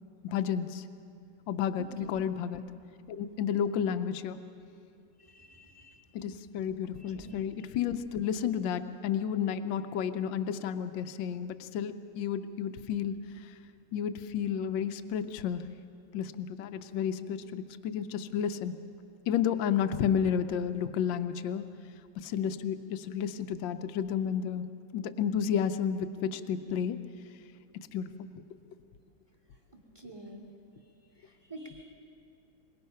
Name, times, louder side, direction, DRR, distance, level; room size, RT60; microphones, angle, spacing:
voice 1, 0.2-0.8 1.5-2.6 3.1-4.4 6.1-13.5 13.9-15.6 16.1-18.8 19.3-21.7 22.2-24.6 24.9-27.0 27.7-28.3, left 8 dB, 75° left, 10 dB, 1.4 m, -31 dB
voice 2, 5.3-6.0 7.1-7.3 30.0-30.5 31.5-31.9, right 1 dB, 10° right, 0 dB, 2.3 m, -47 dB
23.0 x 21.0 x 5.6 m, 2.5 s
omnidirectional pair, 2.1 m